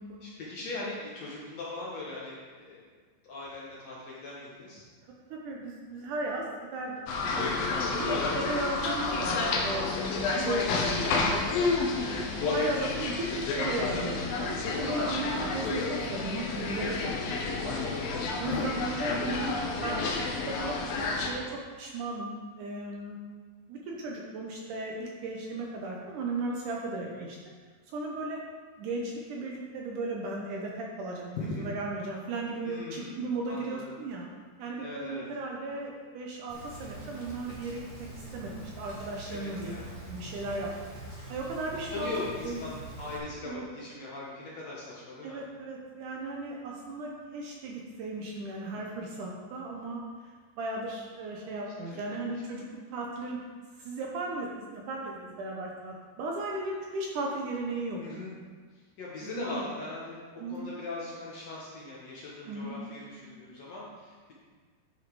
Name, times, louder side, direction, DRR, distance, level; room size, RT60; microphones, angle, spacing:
voice 1, 0.2-2.8 3.2-4.8 7.8-8.4 12.1-12.6 18.5-19.0 27.1-27.2 31.4-31.7 32.6-33.1 33.5-33.8 34.8-35.2 39.3-39.9 41.9-45.4 48.7-49.0 51.9-52.0 58.0-58.4 58.7-64.3, left 3 dB, 60° left, -5 dB, 1.9 m, -40 dB
voice 2, 5.0-7.0 7.3-11.2 12.0-17.9 18.4-19.6 19.8-20.8 21.1-23.2 23.7-27.4 27.9-28.4 28.8-34.3 34.6-39.8 40.1-40.7 41.3-42.6 43.5-43.6 45.2-50.0 50.6-52.6 52.9-53.4 53.8-58.0 59.2-59.7 60.4-60.6 62.5-62.8 63.0-63.3, right 2 dB, 70° right, -1 dB, 2.1 m, -36 dB
sound 1, 7.1-21.3, left 3 dB, 80° left, 2.6 m, -30 dB
Rain, 36.5-43.2, right 2 dB, 25° right, 1.8 m, -44 dB
10.5 x 5.5 x 4.7 m, 1.5 s
omnidirectional pair, 4.3 m